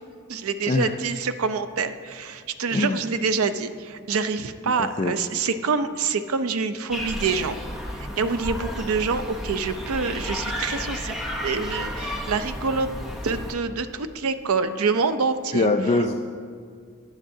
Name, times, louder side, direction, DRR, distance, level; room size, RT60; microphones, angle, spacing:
voice 1, 0.3-7.6 7.9-11.2 11.4-12.9 13.2-15.7, right 4 dB, 80° right, 11 dB, 0.5 m, -26 dB
voice 2, 4.7-5.1 15.5-16.1, left 2 dB, 30° left, 4 dB, 0.3 m, -23 dB
sound 1, 6.9-13.5, left 1 dB, ahead, 0.8 m, -32 dB
15.0 x 9.7 x 2.7 m, 2.1 s
head